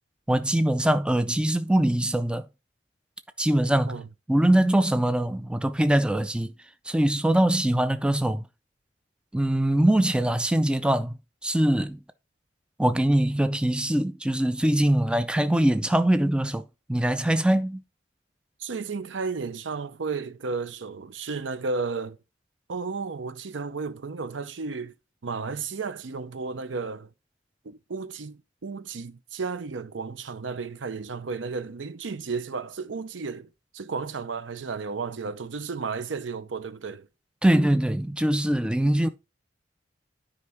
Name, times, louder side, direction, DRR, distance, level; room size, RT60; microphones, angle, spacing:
voice 1, 0.3-2.5 3.4-4.0 4.3-6.5 6.9-8.5 9.3-12.0 12.8-16.6 16.9-17.8 37.4-39.1, right 1 dB, 5° right, 0.4 m, -23 dB
voice 2, 18.6-22.2 22.7-24.9 25.2-27.1 27.6-37.1, right 4 dB, 85° right, 0.7 m, -33 dB
9.5 x 5.2 x 3.5 m
head